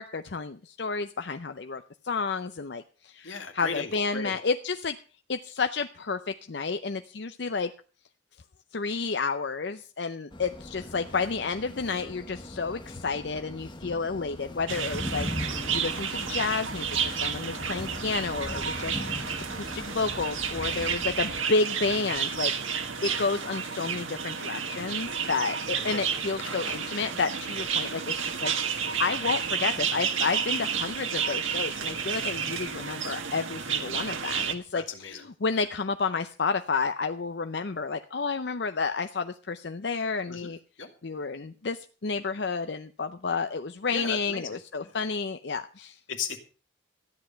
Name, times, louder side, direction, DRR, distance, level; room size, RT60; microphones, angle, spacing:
voice 1, 0.0-5.0 5.3-7.7 8.7-15.3 15.7-28.5 29.0-40.6 41.0-46.0, left 4 dB, 60° left, 9 dB, 0.6 m, -31 dB
voice 2, 3.2-4.4 18.9-19.1 25.8-26.1 26.4-26.8 34.7-35.2 40.3-40.5 40.8-40.9 43.9-44.9 46.1-46.4, left 5 dB, 85° left, 6 dB, 2.2 m, -37 dB
sound 1, 10.3-21.4, left 1 dB, 25° left, 1.0 m, -39 dB
sound 2, 14.7-34.6, right 7 dB, 85° right, 1.6 m, -31 dB
14.0 x 9.9 x 5.7 m, 0.38 s
head